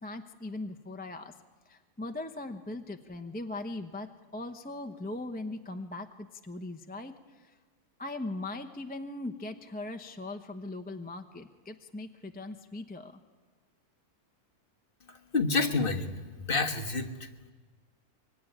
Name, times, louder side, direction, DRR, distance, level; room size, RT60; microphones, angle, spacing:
voice 1, 0.0-1.3 1.7-7.5 8.0-13.2, left 2 dB, 10° left, 6 dB, 0.7 m, -40 dB
voice 2, 15.3-16.1 16.5-17.3, left 3 dB, 35° left, 3 dB, 1.6 m, -28 dB
24.5 x 23.5 x 10.0 m, 1.4 s
omnidirectional pair, 1.6 m